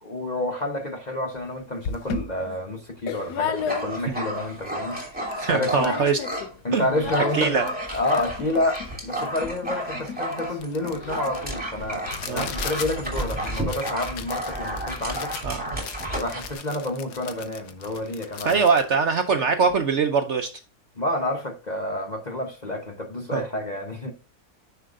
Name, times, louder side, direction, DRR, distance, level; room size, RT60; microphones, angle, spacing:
voice 1, 0.0-6.0 6.6-7.6 7.9-15.3 16.2-18.6 21.0-24.1, left 1 dB, 35° left, 0.8 m, -29 dB
sound 1, 1.4-1.5 1.8-4.2 4.6-4.7 4.9-5.4 5.7-6.5 6.8-19.8, left 7 dB, 80° left, 1.4 m, -35 dB
Dog, 3.6-6.5 6.8-16.5, right 1 dB, 5° right, 2.7 m, -32 dB
voice 2, 5.4-6.2 6.7-6.9 7.3-7.6 12.3-12.5 15.4-15.6 18.4-20.5 23.3-23.4, right 5 dB, 60° right, 0.8 m, -22 dB
9.9 x 5.6 x 2.5 m
omnidirectional pair, 1.7 m